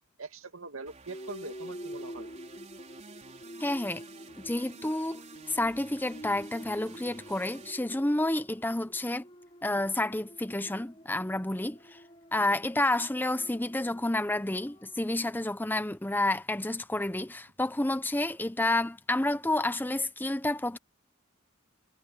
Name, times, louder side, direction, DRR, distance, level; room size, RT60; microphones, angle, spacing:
voice 1, 0.2-2.3, right 3 dB, 90° right, 2.4 m, -42 dB
Prophets Last Words, 0.9-7.7, right 4 dB, 35° right, 4.4 m, -51 dB
sound 1, 1.1-15.3, equal, 30° left, 3.0 m, -48 dB
voice 2, 3.6-4.0 4.4-9.2 9.6-12.0 12.3-20.8, left 1 dB, 10° left, 0.7 m, -30 dB
head